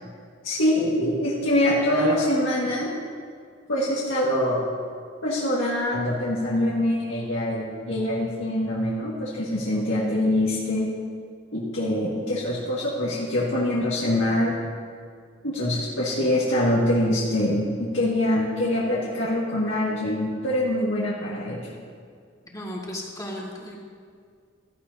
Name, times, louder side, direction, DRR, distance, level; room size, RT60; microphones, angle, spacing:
voice 1, 0.4-2.9 3.7-4.6 5.2-10.9 11.5-14.6 15.4-21.8, left 1 dB, 85° left, -7 dB, 2.0 m, -24 dB
voice 2, 22.5-23.8, left 1 dB, 20° left, -3 dB, 1.9 m, -35 dB
16.0 x 14.0 x 2.8 m, 2.1 s
head